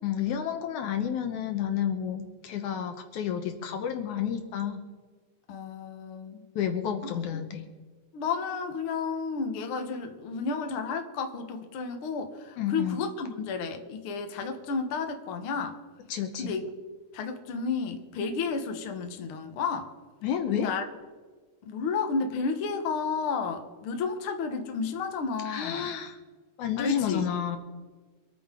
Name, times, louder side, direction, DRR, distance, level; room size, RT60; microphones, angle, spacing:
voice 1, 0.0-4.8 6.6-7.6 12.6-13.0 16.1-16.5 20.2-20.7 25.5-26.2 26.6-27.6, left 9 dB, 70° left, 6 dB, 2.3 m, -30 dB
voice 2, 5.5-6.5 7.0-7.1 8.1-15.8 16.4-16.7 17.1-19.9 20.6-20.9 21.6-25.9 26.8-27.2, left 5 dB, 55° left, 5 dB, 1.7 m, -32 dB
25.5 x 9.3 x 3.8 m, 1.4 s
omnidirectional pair, 3.8 m